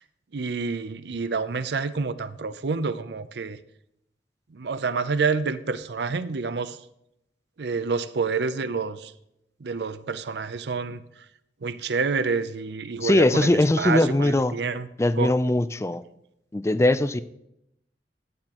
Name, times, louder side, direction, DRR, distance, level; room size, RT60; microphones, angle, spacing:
voice 1, 0.3-3.6 4.5-6.8 7.6-9.1 9.6-11.0 11.6-14.9 15.2-15.3, right 4 dB, 70° right, 0.6 m, -28 dB
voice 2, 13.0-14.6 15.0-16.0 16.5-17.2, left 1 dB, 15° left, 0.4 m, -21 dB
13.0 x 9.8 x 3.0 m
head